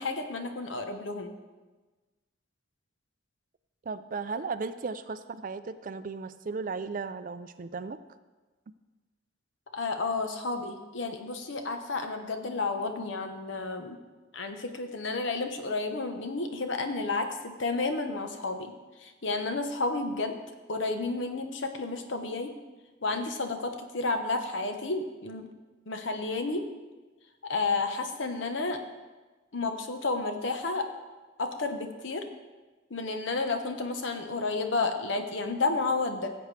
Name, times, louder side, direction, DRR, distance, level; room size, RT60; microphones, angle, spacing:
voice 1, 0.0-1.3 9.7-14.0 14.3-18.7 19.0-20.3 20.7-22.5 23.0-25.5 25.9-26.6 27.4-28.8 29.5-30.8 31.4-32.2 32.9-36.3, left 3 dB, 65° left, 6 dB, 1.0 m, -31 dB
voice 2, 3.9-8.0, right 4 dB, 40° right, 12 dB, 0.4 m, -35 dB
16.0 x 7.9 x 3.3 m, 1.3 s
head